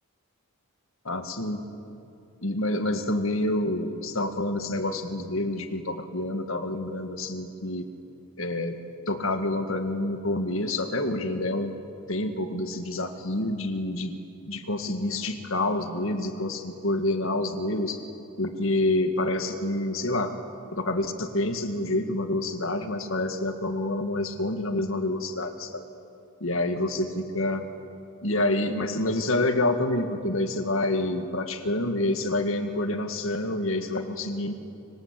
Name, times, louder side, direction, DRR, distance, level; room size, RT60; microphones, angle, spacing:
voice 1, 1.1-1.7 2.4-7.9 8.4-8.8 9.1-11.7 12.1-14.1 14.5-18.0 18.4-20.4 20.7-25.9 26.4-27.7 28.2-34.5, left 1 dB, 65° left, 7 dB, 1.9 m, -28 dB
25.5 x 25.0 x 8.2 m, 2.7 s
head